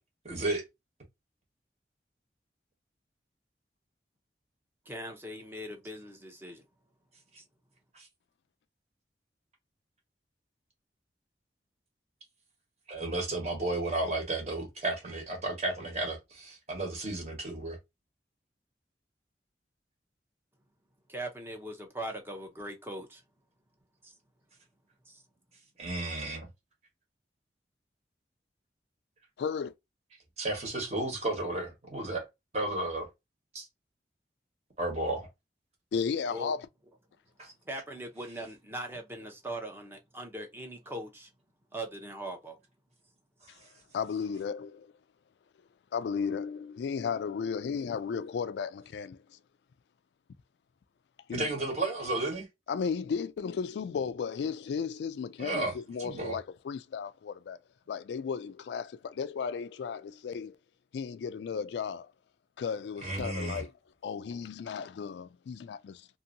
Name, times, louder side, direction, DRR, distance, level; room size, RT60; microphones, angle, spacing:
voice 1, 0.2-0.6 7.9-8.1 12.9-17.8 25.8-26.5 30.4-32.2 32.5-33.1 34.8-35.3 37.4-37.5 51.3-52.5 55.4-56.4 63.0-63.6, right 2 dB, 40° right, 1.3 m, -33 dB
voice 2, 4.9-6.6 7.4-7.5 21.1-23.2 24.0-24.1 25.1-25.2 36.3-36.5 37.7-41.3 41.7-42.6, right 1 dB, 15° right, 0.7 m, -40 dB
voice 3, 29.4-29.7 35.9-36.6 43.9-44.9 45.9-49.2 51.3-51.5 52.7-57.6 57.9-60.6 60.9-62.1 62.6-63.7 64.0-66.1, left 6 dB, 75° left, 0.3 m, -34 dB
2.7 x 2.6 x 2.5 m
head